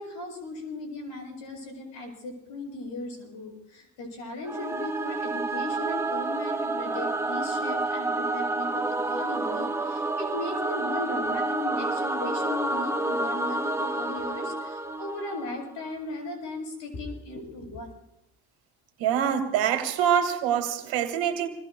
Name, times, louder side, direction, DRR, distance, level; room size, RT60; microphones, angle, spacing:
voice 1, 0.0-17.9, left 2 dB, 75° left, 7.2 m, -37 dB
Singing / Musical instrument, 4.4-15.7, right 2 dB, 5° right, 1.0 m, -29 dB
voice 2, 19.0-21.5, right 9 dB, 85° right, 2.0 m, -25 dB
27.0 x 22.5 x 2.3 m
supercardioid pair, 75°, 44 cm